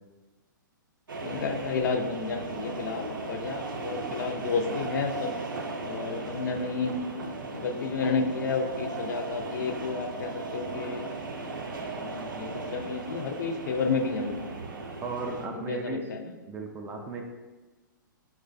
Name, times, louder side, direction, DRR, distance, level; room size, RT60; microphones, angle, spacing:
sound 1, 1.1-15.5, right 3 dB, 80° right, 0.5 m, -37 dB
voice 1, 1.2-5.4 5.8-6.9 7.5-11.0 11.9-14.4 15.5-16.3, left 4 dB, 60° left, 5 dB, 0.4 m, -31 dB
voice 2, 15.0-16.0 16.5-17.2, right 3 dB, 15° right, 1 dB, 0.3 m, -35 dB
4.4 x 2.1 x 2.5 m, 1.2 s
hypercardioid pair, 120°, 11 cm